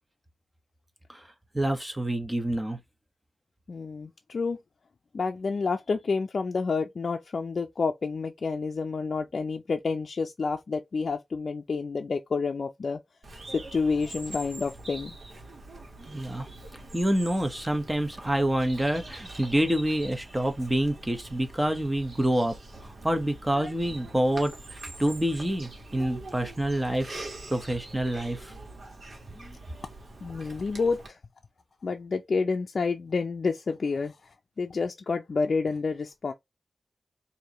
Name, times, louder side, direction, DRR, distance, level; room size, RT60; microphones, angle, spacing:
voice 1, 1.5-2.8 16.1-16.5 16.9-22.6 23.0-27.2 27.5-28.5 29.3-29.6, right 1 dB, 10° right, 1.0 m, -27 dB
voice 2, 3.7-4.6 5.1-13.0 13.5-15.1 30.2-31.2 31.8-34.2 34.6-36.3, left 4 dB, 60° left, 0.4 m, -29 dB
Bird vocalization bird call bird song, 13.2-31.1, right 2 dB, 65° right, 1.5 m, -44 dB
4.6 x 2.7 x 2.9 m
wide cardioid pair, 115°, 0 cm